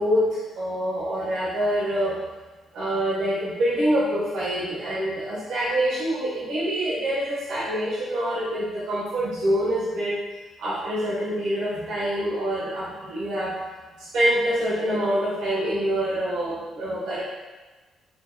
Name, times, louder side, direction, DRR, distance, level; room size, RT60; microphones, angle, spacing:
voice 1, 0.0-2.2 2.7-10.2 10.6-13.5 14.0-17.2, equal, 85° right, -9 dB, 1.3 m, -25 dB
4.3 x 3.0 x 2.3 m, 1.2 s
cardioid pair, 90°, 0 cm